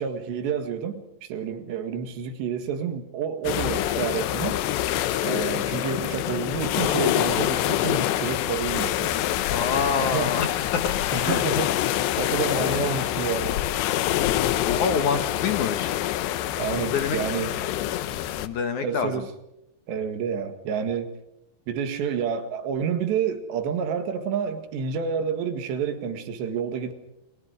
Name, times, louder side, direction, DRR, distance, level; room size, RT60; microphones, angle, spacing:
voice 1, 0.0-4.6 5.2-9.2 9.4-9.6 10.0-10.3 11.1-13.6 16.6-17.6 18.8-19.3 19.9-21.2 21.7-26.9, right 7 dB, 90° right, 8 dB, 4.1 m, -29 dB
sound 1, 3.4-18.5, left 13 dB, 85° left, 3.1 m, -26 dB
voice 2, 9.5-10.9 11.2-11.4 14.6-15.9 16.9-17.2 18.4-19.1, left 5 dB, 60° left, 8 dB, 2.2 m, -26 dB
29.0 x 22.5 x 5.1 m, 0.83 s
omnidirectional pair, 4.8 m